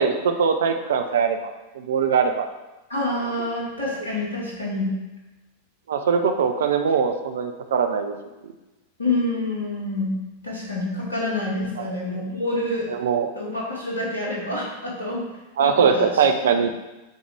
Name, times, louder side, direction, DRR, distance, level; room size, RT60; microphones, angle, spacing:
voice 1, 0.0-2.5 5.9-8.1 8.4-8.5 11.8-11.9 13.0-13.3 15.6-16.7, right 6 dB, 60° right, 6 dB, 0.6 m, -21 dB
voice 2, 2.9-4.9 9.0-10.1 10.4-12.9 13.3-15.3 15.6-16.2, left 2 dB, 80° left, -5 dB, 2.1 m, -27 dB
9.0 x 3.9 x 3.5 m, 1.1 s
figure-of-eight pair, 90°, 0 cm